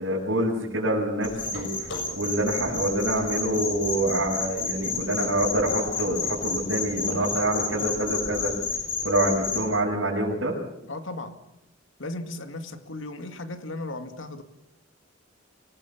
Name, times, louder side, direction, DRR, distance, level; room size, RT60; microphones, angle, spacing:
voice 1, 0.0-8.5 9.0-10.5, right 1 dB, 80° right, -6 dB, 6.2 m, -26 dB
sound 1, 1.2-9.6, left 4 dB, 65° left, 6.9 m, -31 dB
voice 2, 10.9-11.4 12.0-14.4, left 2 dB, 85° left, 8 dB, 2.2 m, -36 dB
25.0 x 18.5 x 7.2 m, 0.86 s
head